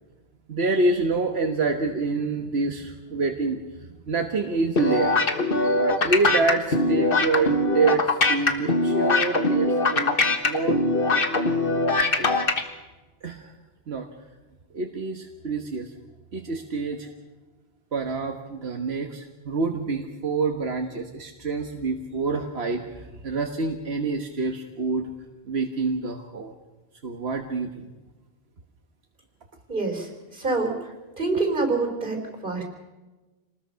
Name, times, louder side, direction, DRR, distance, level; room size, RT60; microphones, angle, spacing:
voice 1, 0.5-5.2 5.5-10.2 10.4-10.8 12.2-12.3 13.2-13.5 13.9-14.1 14.7-15.9 16.3-17.1 17.9-25.1 25.4-26.5 27.0-27.9, right 3 dB, 85° right, 3 dB, 1.6 m, -27 dB
sound 1, 4.8-12.6, left 2 dB, 60° left, 1.7 m, -22 dB
voice 2, 29.7-30.1 30.3-30.7 31.2-32.2 32.4-32.6, right 3 dB, 55° right, 3 dB, 4.5 m, -25 dB
27.5 x 20.0 x 5.8 m, 1.2 s
omnidirectional pair, 1.0 m